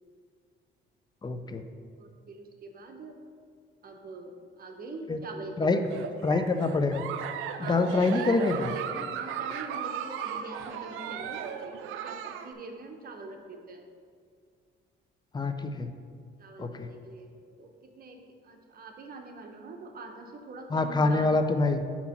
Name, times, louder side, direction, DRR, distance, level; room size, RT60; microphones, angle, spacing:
voice 1, 1.2-1.6 5.1-5.2 5.6-5.8 6.2-7.0 7.6-8.7 15.3-15.9 16.6-16.9 20.7-21.8, left 3 dB, 20° left, 8 dB, 0.5 m, -26 dB
voice 2, 2.0-3.2 3.8-5.9 7.6-13.8 16.4-21.3, right 3 dB, 50° right, 3 dB, 0.9 m, -44 dB
Giggle, 5.8-12.5, right 8 dB, 85° right, 0.4 m, -36 dB
8.0 x 3.0 x 5.8 m, 2.1 s
cardioid pair, 90°, 20 cm